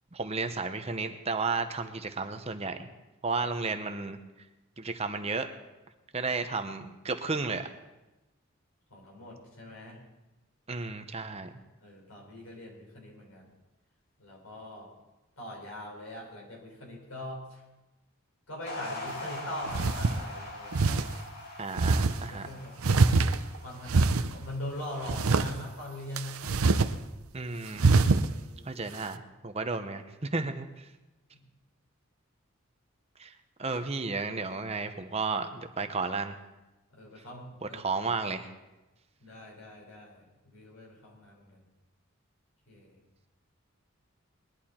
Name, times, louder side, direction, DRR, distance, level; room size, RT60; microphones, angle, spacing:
voice 1, 0.1-2.9 3.2-4.2 4.8-5.5 6.1-7.7 10.7-11.5 21.6-22.5 27.3-27.8 28.7-30.8 33.2-33.3 33.6-36.3 37.6-38.5, right 4 dB, 30° right, 8 dB, 0.8 m, -33 dB
voice 2, 8.9-10.0 11.8-13.4 14.2-14.9 15.4-17.6 18.5-21.1 22.3-22.7 23.6-26.4 28.1-28.8 31.4-31.5 36.9-37.8 39.2-41.6 42.7-43.0, left 1 dB, 90° left, -2 dB, 5.4 m, -42 dB
sound 1, 18.7-25.2, left 2 dB, 45° left, 2.2 m, -42 dB
sound 2, 19.1-19.2 19.7-20.2 20.7-21.1 21.8-22.2 22.8-23.6 23.9-24.3 25.1-25.5 26.2-26.9 27.2-27.3 27.8-28.3, right 3 dB, 90° right, 0.7 m, -23 dB
20.5 x 11.5 x 4.4 m, 1.1 s
head